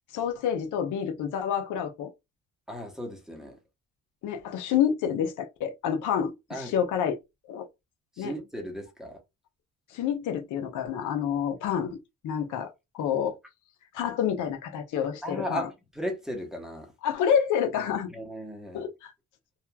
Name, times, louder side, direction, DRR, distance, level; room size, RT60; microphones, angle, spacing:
voice 1, 0.1-2.1 4.2-7.2 7.5-7.7 8.2-8.3 9.9-12.0 12.2-13.4 13.9-15.7 17.0-18.1 18.7-19.1, left 8 dB, 80° left, 0.7 m, -28 dB
voice 2, 2.7-3.6 6.5-6.7 8.2-9.2 15.2-16.9 17.9-18.8, equal, ahead, 0.9 m, -36 dB
2.9 x 2.3 x 2.2 m
cardioid pair, 90°, 30 cm